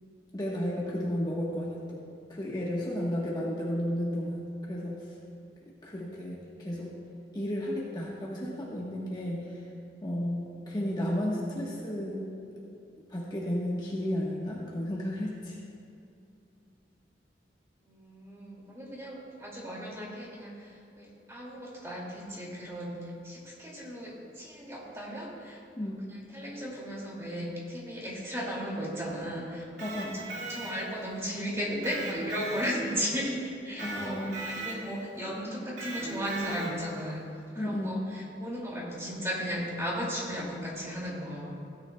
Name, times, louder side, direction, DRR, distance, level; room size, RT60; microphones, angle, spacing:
voice 1, 0.3-2.0 2.3-5.1 5.8-6.9 7.3-9.6 10.0-12.2 13.1-15.6 25.8-26.0 29.8-30.3 33.8-34.5 37.6-38.1, equal, 25° left, -5 dB, 1.2 m, -33 dB
voice 2, 17.9-29.9 30.1-34.2 34.4-37.2 37.5-41.5, equal, 15° right, -4 dB, 2.3 m, -36 dB
Electric guitar, 29.6-31.1 31.8-33.2 33.8-35.1 35.8-37.0, right 2 dB, 85° right, 2.2 m, -38 dB
16.5 x 9.9 x 2.2 m, 2.6 s
head